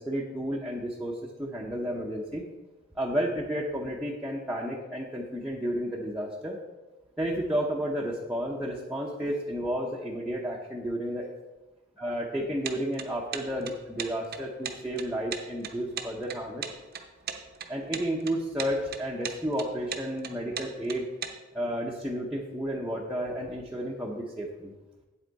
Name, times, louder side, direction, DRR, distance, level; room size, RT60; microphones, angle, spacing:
voice 1, 0.0-2.5 2.9-6.6 7.2-11.3 12.0-16.6 17.7-21.1 21.5-24.7, equal, 5° right, -4 dB, 0.8 m, -32 dB
sound 1, 12.6-21.3, right 7 dB, 50° right, 0.8 m, -37 dB
8.5 x 8.1 x 4.0 m, 1.1 s
head